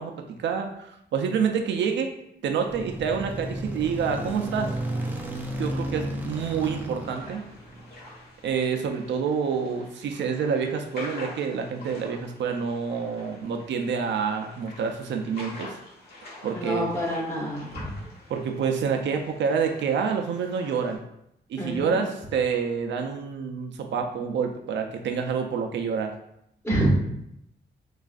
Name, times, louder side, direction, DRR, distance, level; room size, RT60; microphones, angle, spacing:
voice 1, 0.0-2.1 2.4-4.7 5.6-7.4 8.4-15.7 16.4-16.9 18.3-21.0 21.5-26.1, right 6 dB, 80° right, 4 dB, 0.4 m, -27 dB
sound 1, 2.7-8.1, right 1 dB, 10° right, 0.4 m, -33 dB
sound 2, 7.0-20.9, left 2 dB, 60° left, 1.3 m, -46 dB
voice 2, 16.5-18.0 21.6-22.0 26.6-26.9, equal, 15° left, -4 dB, 0.9 m, -28 dB
4.5 x 2.4 x 2.4 m, 0.78 s
wide cardioid pair, 145°, 19 cm